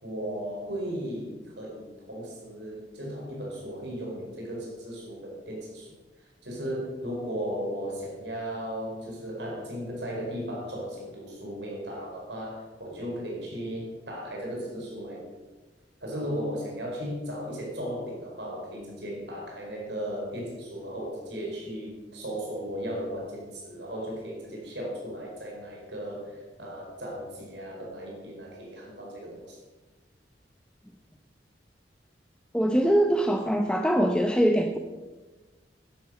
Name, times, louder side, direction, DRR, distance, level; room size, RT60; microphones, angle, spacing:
voice 1, 0.0-15.3 16.0-29.6, equal, 70° right, -2 dB, 4.6 m, -36 dB
voice 2, 32.5-34.8, equal, 5° left, 3 dB, 0.8 m, -23 dB
12.0 x 11.0 x 6.4 m, 1.2 s
head